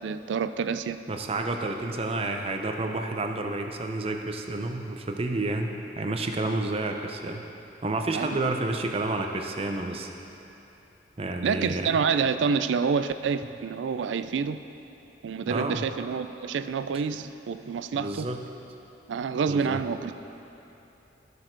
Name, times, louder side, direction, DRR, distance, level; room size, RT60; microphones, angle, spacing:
voice 1, 0.0-1.0 8.1-8.3 11.4-14.6 15.2-18.3 19.1-20.1, right 6 dB, 85° right, 12 dB, 0.4 m, -28 dB
voice 2, 1.1-7.4 7.8-10.1 11.2-12.0 15.5-15.8 17.9-18.4 19.5-19.8, right 2 dB, 35° right, 4 dB, 0.6 m, -30 dB
13.0 x 6.4 x 4.5 m, 3.0 s
head